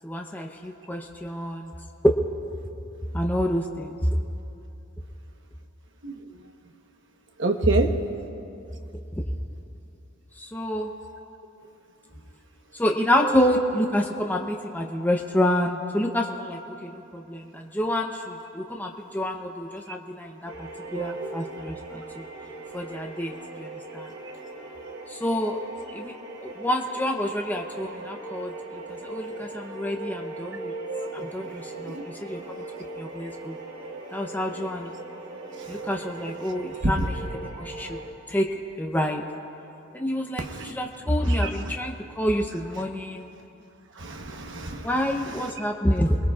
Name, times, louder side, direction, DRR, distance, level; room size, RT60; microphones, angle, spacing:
voice 1, 0.0-1.7 3.1-4.0 9.1-9.2 10.4-10.9 12.7-22.0 22.7-24.1 25.1-25.6 25.9-26.1 26.4-30.7 31.1-32.0 32.2-32.6 33.0-33.6 34.1-34.9 35.7-37.1 37.4-38.0 38.3-38.5 38.8-39.2 39.9-43.3 44.8-46.2, equal, 10° left, 1 dB, 0.8 m, -28 dB
voice 2, 7.4-8.0 13.2-13.3 20.9-21.6 30.9-32.0 40.4-40.7 41.3-41.7 44.0-44.9, right 3 dB, 60° right, 3 dB, 1.1 m, -30 dB
sound 1, 20.4-38.1, right 2 dB, 75° right, 2.7 m, -39 dB
28.0 x 21.0 x 2.4 m, 2.8 s
head